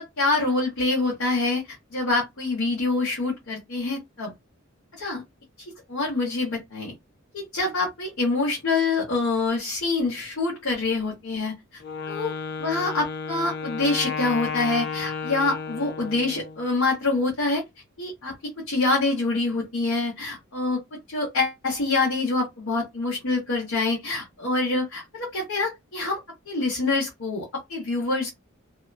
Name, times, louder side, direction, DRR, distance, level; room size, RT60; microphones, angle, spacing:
voice 1, 0.0-4.3 5.0-5.2 5.9-6.9 7.3-11.5 12.1-12.3 12.6-17.6 18.0-18.3 18.7-20.8 21.1-26.2 26.5-28.3, left 3 dB, 80° left, 1.1 m, -26 dB
Wind instrument woodwind instrument, 11.8-16.7, left 5 dB, 50° left, 0.4 m, -32 dB
2.8 x 2.1 x 2.4 m
head